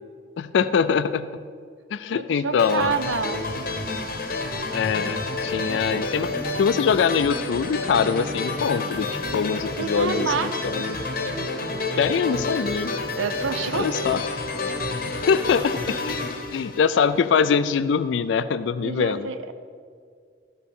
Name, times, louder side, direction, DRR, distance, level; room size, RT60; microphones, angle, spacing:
voice 1, 0.4-1.3 1.9-2.9 4.7-11.0 12.0-12.9 13.7-14.2 15.3-16.2 16.5-19.3, left 6 dB, 70° left, 13 dB, 0.3 m, -23 dB
voice 2, 2.1-3.4 9.8-10.7 13.2-14.0 18.8-19.5, right 5 dB, 80° right, 10 dB, 0.5 m, -28 dB
sound 1, 2.6-17.4, left 2 dB, 45° left, 0.8 m, -29 dB
13.0 x 5.4 x 5.4 m, 2.1 s
head